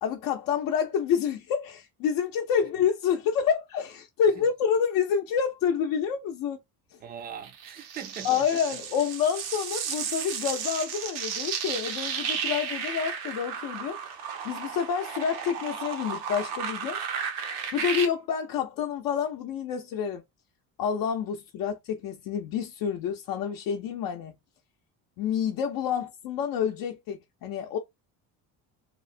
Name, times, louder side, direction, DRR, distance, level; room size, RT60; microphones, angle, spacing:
voice 1, 0.0-6.6 8.2-14.0 14.4-17.0 17.7-20.2 20.8-24.3 25.2-27.8, left 7 dB, 70° left, 0.6 m, -28 dB
voice 2, 7.0-8.4, right 8 dB, 25° right, 0.4 m, -40 dB
sound 1, 7.4-18.1, right 7 dB, 85° right, 0.8 m, -33 dB
2.9 x 2.1 x 2.5 m
cardioid pair, 140°, 38 cm